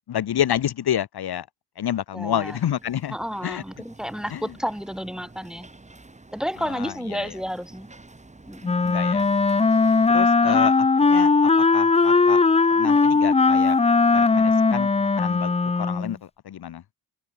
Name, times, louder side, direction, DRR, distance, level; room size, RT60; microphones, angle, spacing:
voice 1, 0.1-1.5 1.8-3.1 3.4-3.6 4.3-4.4 6.7-7.3 8.8-9.2 10.1-11.3 11.7-12.4 12.7-13.8 14.1-16.2 16.4-16.8, left 10 dB, 65° left, 1.2 m, -29 dB
voice 2, 2.1-2.6 3.1-5.7 6.3-7.9 8.5-8.8 10.4-10.7, equal, ahead, 2.3 m, -31 dB
sound 1, 2.4-10.1, right 2 dB, 15° right, 7.4 m, -48 dB
Wind instrument woodwind instrument, 8.6-16.2, left 4 dB, 15° left, 0.5 m, -19 dB
wide cardioid pair, 140°, 41 cm